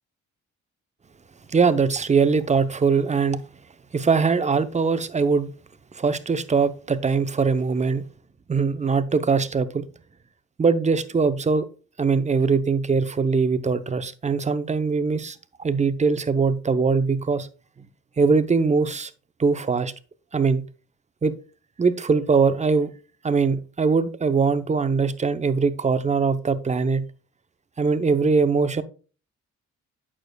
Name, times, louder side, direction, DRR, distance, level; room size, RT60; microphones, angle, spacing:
voice 1, 1.5-3.4 3.9-5.5 5.9-8.0 8.5-9.8 10.6-11.7 12.0-17.5 18.2-19.1 19.4-19.9 20.3-20.6 21.2-21.3 21.8-22.9 23.2-27.0 27.8-28.8, right 5 dB, 25° right, 0.7 m, -21 dB
8.6 x 6.7 x 2.3 m
cardioid pair, 90°, 30 cm